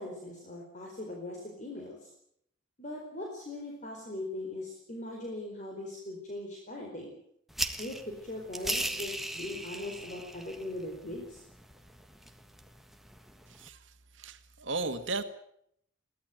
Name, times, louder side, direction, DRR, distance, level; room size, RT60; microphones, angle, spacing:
voice 1, 0.0-2.1 2.8-7.1 7.8-11.4, left 1 dB, 40° left, 0 dB, 4.6 m, -40 dB
sound 1, 7.5-13.7, right 1 dB, ahead, 1.3 m, -39 dB
voice 2, 14.2-15.2, right 3 dB, 70° right, 8 dB, 1.9 m, -35 dB
23.0 x 17.0 x 9.2 m, 0.73 s
head